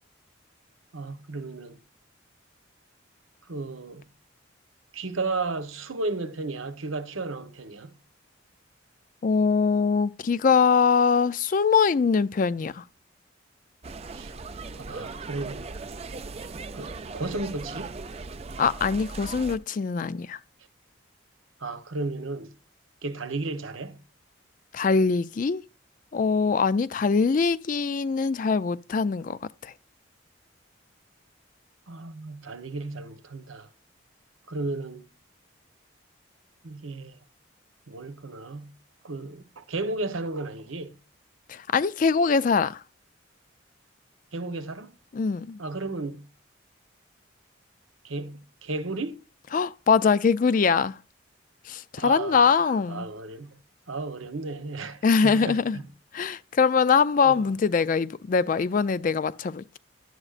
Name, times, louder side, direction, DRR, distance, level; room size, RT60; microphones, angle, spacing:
voice 1, 0.9-1.8 3.4-4.1 4.9-8.0 14.1-14.3 14.7-15.7 16.7-18.0 21.6-22.5 23.0-24.0 31.9-33.7 34.5-35.1 36.6-37.2 37.9-38.7 39.0-41.0 44.3-44.9 45.6-46.3 48.0-49.2 52.0-53.6 53.9-55.9 56.2-56.3 57.2-57.5, right 3 dB, 90° right, 1.0 m, -34 dB
voice 2, 9.2-12.8 18.6-20.4 24.7-25.6 26.1-29.7 41.5-42.8 45.1-45.6 49.5-51.0 51.7-53.1 55.0-55.8 56.1-59.6, left 5 dB, 40° left, 0.3 m, -23 dB
sound 1, 13.8-19.6, right 3 dB, 30° right, 0.4 m, -38 dB
11.0 x 8.0 x 2.4 m
head